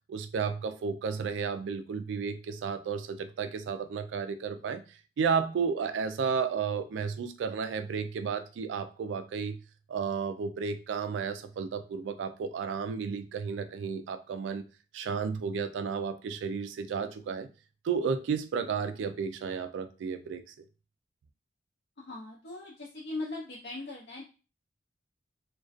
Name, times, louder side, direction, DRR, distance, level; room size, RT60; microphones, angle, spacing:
voice 1, 0.1-9.6 9.9-14.7 14.9-17.5 17.8-20.5, right 6 dB, 85° right, 10 dB, 0.3 m, -32 dB
voice 2, 22.0-24.2, left 2 dB, 60° left, -5 dB, 0.5 m, -39 dB
2.4 x 2.2 x 2.4 m, 0.33 s
head